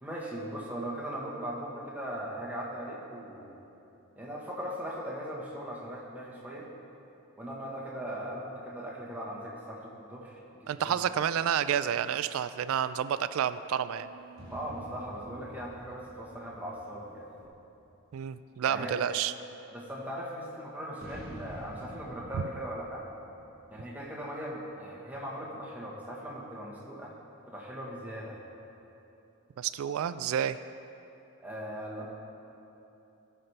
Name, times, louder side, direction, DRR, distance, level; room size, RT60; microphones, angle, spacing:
voice 1, 0.0-3.6 4.2-6.7 7.4-11.0 14.5-17.5 18.6-19.0 19.7-23.1 23.7-27.1 27.5-28.4 31.4-32.1, equal, 5° right, -5 dB, 1.2 m, -39 dB
voice 2, 10.7-14.1 18.1-19.3 29.6-30.6, right 9 dB, 75° right, 14 dB, 0.3 m, -29 dB
sound 1, 11.4-11.5 11.9-12.0 12.5-16.8 17.4-17.5, right 3 dB, 70° left, 1.2 m, -56 dB
sound 2, 14.3-18.0 21.0-24.7, equal, 45° right, 1.4 m, -49 dB
16.5 x 5.7 x 3.3 m, 2.9 s
head